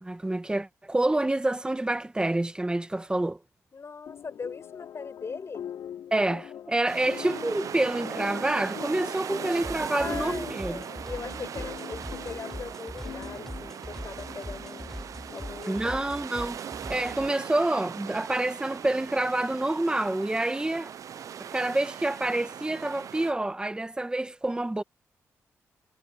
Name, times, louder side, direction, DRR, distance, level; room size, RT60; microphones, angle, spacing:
voice 1, 0.0-3.4 6.1-10.8 15.7-16.6 16.9-20.9 21.5-24.8, right 2 dB, 15° right, 1.7 m, -27 dB
voice 2, 3.7-5.7 9.9-15.0 15.3-16.2, left 5 dB, 50° left, 6.3 m, -40 dB
lofi vocoder thing, 4.1-15.8, left 9 dB, 85° left, 5.1 m, -43 dB
sound 1, 6.9-23.3, right 8 dB, 70° right, 0.7 m, -39 dB
sound 2, 9.6-17.3, left 1 dB, 5° left, 5.5 m, -42 dB
cardioid pair, 65°, 6 cm